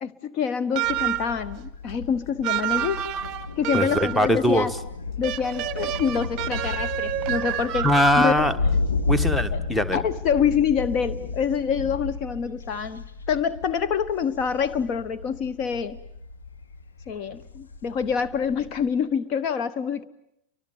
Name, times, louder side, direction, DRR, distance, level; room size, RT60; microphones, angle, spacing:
voice 1, 0.0-3.1 3.6-4.7 5.2-7.9 8.2-8.4 9.5-9.6 9.9-16.0 17.1-20.0, left 7 dB, 40° left, 11 dB, 1.0 m, -26 dB
sound 1, 0.7-1.4 2.4-4.3 5.2-8.4, right 13 dB, 35° right, 0.9 m, -29 dB
Thunder, 0.8-18.9, left 4 dB, 70° left, 1.7 m, -32 dB
voice 2, 3.7-4.7 7.8-8.5 9.1-10.0, equal, 5° left, 15 dB, 1.4 m, -21 dB
29.5 x 24.5 x 7.2 m, 0.77 s
figure-of-eight pair, 90°, 0 cm